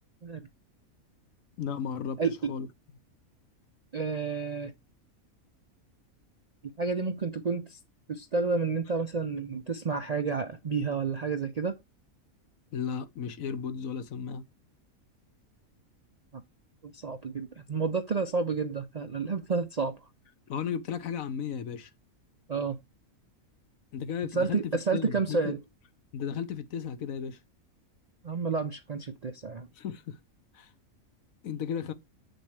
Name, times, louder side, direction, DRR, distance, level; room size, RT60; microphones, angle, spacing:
voice 1, 1.6-2.7 12.7-14.4 20.5-21.9 23.9-25.6 26.1-27.4 29.8-30.2 30.5-30.7 31.4-31.9, left 7 dB, 75° left, 1.2 m, -34 dB
voice 2, 2.2-2.5 3.9-4.7 6.8-7.8 8.1-11.8 16.3-16.4 16.8-20.0 22.5-22.8 24.3-25.6 28.2-29.7, right 4 dB, 50° right, 0.4 m, -30 dB
7.7 x 6.5 x 3.2 m
omnidirectional pair, 1.5 m